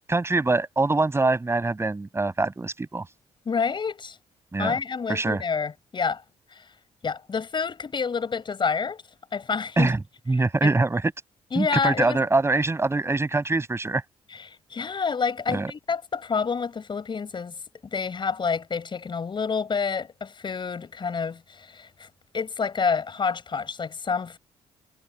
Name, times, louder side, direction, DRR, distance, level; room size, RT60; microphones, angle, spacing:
voice 1, 0.1-3.1 4.5-4.7 5.1-5.4 9.8-10.0 10.3-11.0 11.6-14.0 15.5-15.7, right 3 dB, 20° right, 7.1 m, -23 dB
voice 2, 3.4-4.2 4.6-6.2 6.5-6.7 7.0-9.0 9.3-9.9 10.6-10.7 11.5-12.2 14.3-17.5 17.9-22.1 22.3-24.4, left 5 dB, 40° left, 6.6 m, -28 dB
cardioid pair, 80°, 12 cm